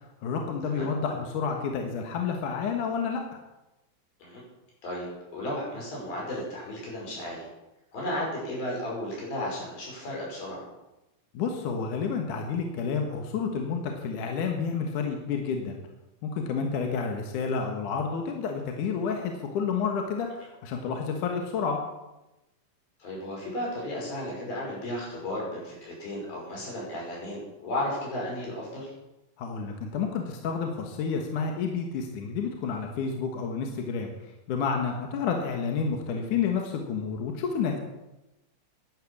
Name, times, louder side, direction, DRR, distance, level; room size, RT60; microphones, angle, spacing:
voice 1, 0.2-3.2 11.4-15.8 16.2-21.8 29.4-37.8, left 5 dB, 65° left, 3 dB, 2.8 m, -30 dB
voice 2, 5.3-7.5 7.9-10.6 23.0-28.9, left 1 dB, 90° left, -3 dB, 7.3 m, -34 dB
11.5 x 11.0 x 7.2 m, 0.97 s
omnidirectional pair, 4.0 m